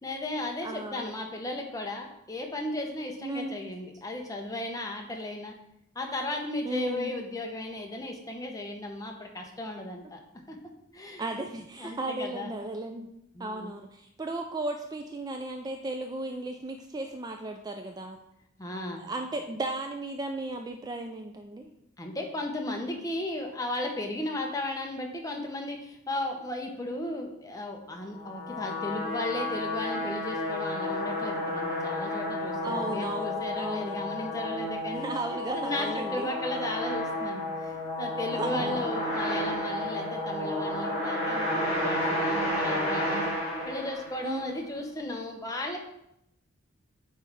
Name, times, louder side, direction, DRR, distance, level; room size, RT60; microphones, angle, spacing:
voice 1, 0.0-5.5 5.9-10.2 10.5-10.6 10.9-11.2 11.8-12.5 13.3-13.7 18.6-19.1 22.0-43.2 43.6-45.8, left 1 dB, 15° left, 2 dB, 0.8 m, -35 dB
voice 2, 0.6-1.1 3.2-3.6 6.6-7.1 11.2-13.1 13.4-18.2 19.0-21.7 32.6-34.0 34.9-36.3 38.4-38.9 44.2-44.6, right 2 dB, 20° right, 4 dB, 0.3 m, -35 dB
sound 1, 28.1-44.4, left 1 dB, 35° left, 2.5 m, -31 dB
7.6 x 3.3 x 4.8 m, 0.80 s
head